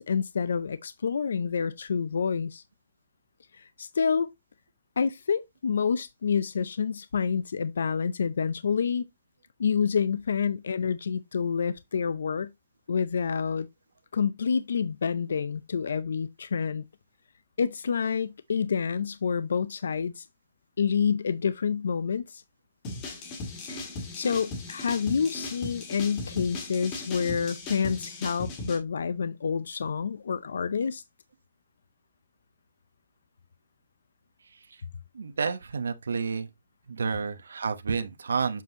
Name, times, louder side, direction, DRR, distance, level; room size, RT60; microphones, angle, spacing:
voice 1, 0.0-2.6 3.5-4.3 5.0-9.1 9.6-12.5 12.9-13.7 14.1-16.8 17.6-20.3 20.8-22.4 23.6-23.8 24.1-31.0, left 6 dB, 70° left, 0.5 m, -28 dB
sound 1, 22.8-28.8, left 2 dB, 20° left, 1.7 m, -37 dB
voice 2, 34.4-34.8 35.1-36.5 36.9-38.6, right 5 dB, 90° right, 0.9 m, -30 dB
7.5 x 5.5 x 2.8 m
hypercardioid pair, 170°, 0 cm